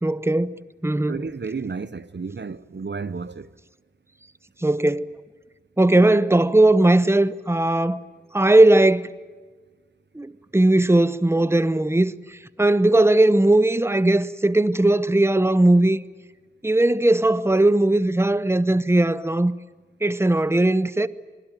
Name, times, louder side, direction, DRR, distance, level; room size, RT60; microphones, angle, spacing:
voice 1, 0.0-1.2 4.6-5.1 5.8-8.0 8.3-9.1 10.1-16.0 16.6-19.5 20.0-21.1, right 1 dB, 15° right, 0.8 m, -18 dB
voice 2, 1.1-3.5, right 4 dB, 65° right, 0.8 m, -32 dB
27.0 x 22.0 x 9.0 m
wide cardioid pair, 60°, 19 cm